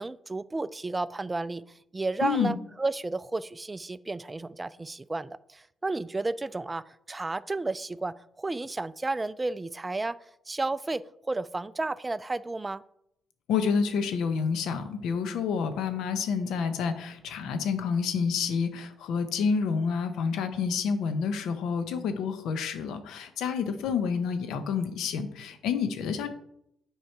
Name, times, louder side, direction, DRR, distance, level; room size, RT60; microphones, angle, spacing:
voice 1, 0.0-1.6 1.9-10.2 10.5-12.8, right 2 dB, 20° right, 16 dB, 0.3 m, -32 dB
voice 2, 2.2-2.5 13.5-26.3, left 6 dB, 85° left, 9 dB, 0.8 m, -29 dB
6.5 x 4.7 x 4.6 m, 0.75 s
cardioid pair, 90°, 0 cm